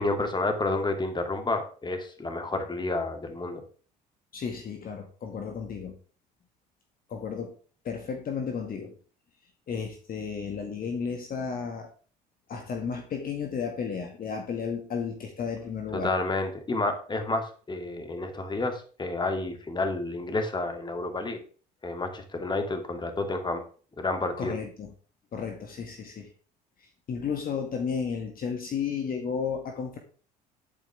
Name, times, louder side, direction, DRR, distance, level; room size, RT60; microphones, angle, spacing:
voice 1, 0.0-3.6 15.9-21.4 21.8-23.6 24.0-24.5, left 2 dB, 20° left, 5 dB, 2.5 m, -30 dB
voice 2, 4.3-6.0 7.1-7.5 7.8-8.9 9.7-11.9 12.5-16.1 24.4-24.9 25.3-26.3 26.8-30.0, left 6 dB, 45° left, 4 dB, 1.9 m, -33 dB
11.5 x 8.6 x 3.4 m, 0.39 s
hypercardioid pair, 60°, 21 cm